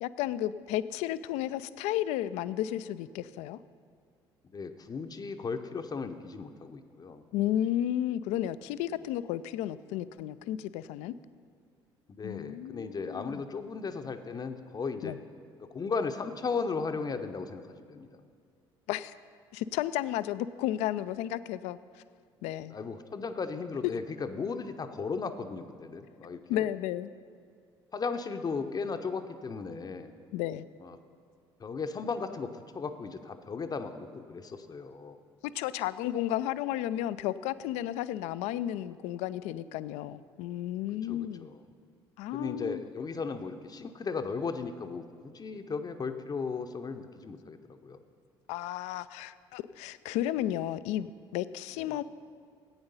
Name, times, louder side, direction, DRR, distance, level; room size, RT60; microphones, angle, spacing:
voice 1, 0.0-3.6 7.3-11.1 12.2-13.4 15.0-15.2 18.9-19.1 19.5-21.8 22.4-22.8 26.5-27.1 30.3-30.7 35.5-41.5 42.2-42.8 48.5-51.1 51.3-52.0, left 12 dB, 60° left, 15 dB, 0.4 m, -33 dB
voice 2, 4.4-7.2 12.1-15.2 15.7-18.1 22.7-26.7 27.9-30.1 30.8-31.0 31.6-35.2 41.1-41.6 42.3-47.6 47.8-48.0 51.8-52.0, left 4 dB, 30° left, 8 dB, 0.7 m, -36 dB
12.0 x 8.6 x 5.5 m, 2.2 s
figure-of-eight pair, 55°, 13 cm